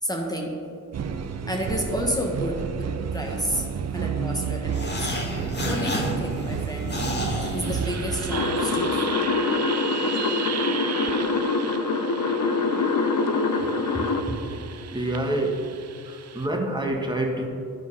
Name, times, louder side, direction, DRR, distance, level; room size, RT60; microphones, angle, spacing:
voice 1, 0.0-0.6 1.4-3.7 3.9-5.1 5.6-7.0 7.4-9.2, equal, 10° left, -1 dB, 1.4 m, -30 dB
sound 1, 0.9-16.5, right 6 dB, 45° right, 0.6 m, -32 dB
sound 2, 4.7-8.4, left 1 dB, 30° left, 1.5 m, -31 dB
sound 3, 8.3-14.2, left 3 dB, 50° left, 0.9 m, -24 dB
voice 2, 13.6-14.4 14.9-15.7 16.0-17.5, right 1 dB, 10° right, 1 dB, 1.5 m, -28 dB
10.5 x 4.6 x 5.5 m, 2.3 s
cardioid pair, 70°, 36 cm